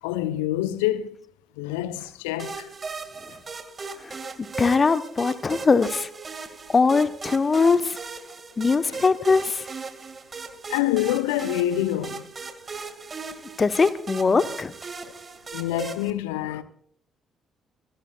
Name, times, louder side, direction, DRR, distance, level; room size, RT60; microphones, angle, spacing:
voice 1, 0.0-1.2 1.6-2.7 3.3-3.4 8.9-9.0 10.7-12.3 15.5-16.6, left 13 dB, 75° left, 0.8 m, -26 dB
sound 1, 2.4-16.1, right 4 dB, 35° right, 2.1 m, -38 dB
voice 2, 4.6-6.1 6.7-8.0 8.6-9.7 13.6-14.7, left 4 dB, 35° left, 1.1 m, -21 dB
25.0 x 18.0 x 2.4 m
figure-of-eight pair, 45°, 0 cm